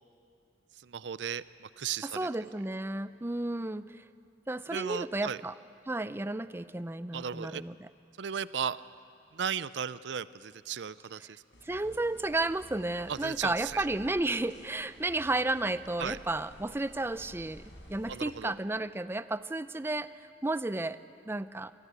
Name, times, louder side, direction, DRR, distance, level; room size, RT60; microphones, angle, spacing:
voice 1, 0.8-2.2 4.7-5.4 7.1-7.6 8.2-8.8 9.3-11.4 13.1-13.8 16.0-16.2 18.1-18.5, right 7 dB, 70° right, 17 dB, 0.5 m, -36 dB
voice 2, 2.0-4.0 4.5-5.5 5.9-7.9 11.6-17.6 17.9-21.0 21.3-21.7, right 2 dB, 15° right, 14 dB, 0.5 m, -32 dB
sound 1, 11.5-18.4, equal, 85° left, 5.0 m, -53 dB
24.5 x 17.0 x 8.2 m, 2.4 s
head